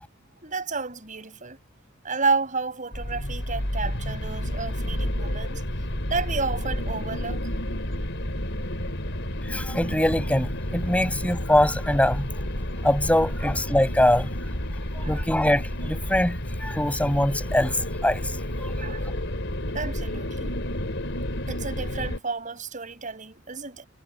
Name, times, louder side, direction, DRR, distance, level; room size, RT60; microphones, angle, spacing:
voice 1, 0.4-1.6 2.0-5.6 6.1-7.4 15.0-15.2 18.8-19.1 19.7-20.5 21.5-23.8, right 4 dB, 40° right, 7.8 m, -31 dB
sound 1, 2.9-22.2, left 1 dB, 65° left, 5.3 m, -30 dB
voice 2, 9.4-12.3 12.8-14.3 14.9-18.7, left 1 dB, 5° left, 6.3 m, -23 dB
head